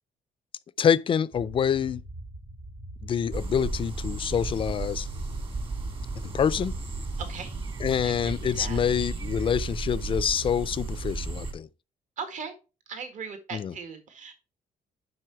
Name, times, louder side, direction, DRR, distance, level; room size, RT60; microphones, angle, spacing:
voice 1, 0.8-2.0 3.0-5.1 6.3-6.7 7.8-11.7 13.5-13.7, left 8 dB, 35° left, 0.4 m, -26 dB
sound 1, 1.3-9.1, right 1 dB, 80° right, 4.2 m, -42 dB
sound 2, 3.3-11.5, right 3 dB, 35° right, 1.6 m, -34 dB
voice 2, 7.2-7.5 8.0-8.8 12.2-12.5 12.9-14.3, right 6 dB, 55° right, 1.7 m, -39 dB
7.8 x 5.6 x 4.6 m
cardioid pair, 130°, 15 cm